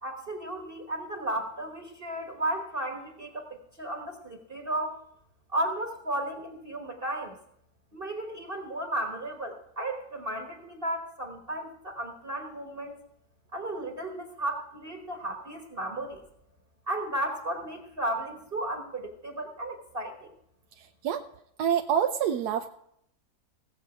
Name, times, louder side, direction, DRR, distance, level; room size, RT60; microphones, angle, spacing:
voice 1, 0.0-5.0 5.5-7.4 7.9-13.0 13.5-16.2 16.9-20.3, right 1 dB, 35° right, 2 dB, 1.4 m, -34 dB
voice 2, 21.6-22.7, right 9 dB, 75° right, 5 dB, 1.1 m, -26 dB
17.5 x 7.8 x 4.9 m, 0.75 s
omnidirectional pair, 1.8 m